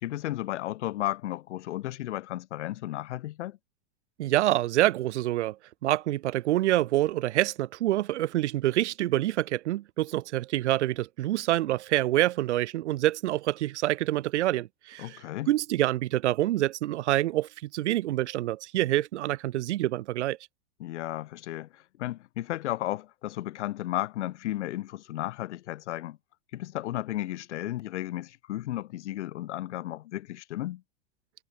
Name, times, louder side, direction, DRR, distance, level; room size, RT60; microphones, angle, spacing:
voice 1, 0.0-3.6 15.0-15.5 20.8-26.2 26.5-30.8, left 14 dB, 80° left, 1.4 m, -34 dB
voice 2, 4.2-5.6 5.8-15.2 15.5-20.4, right 15 dB, 80° right, 1.5 m, -26 dB
supercardioid pair, 150°, 34 cm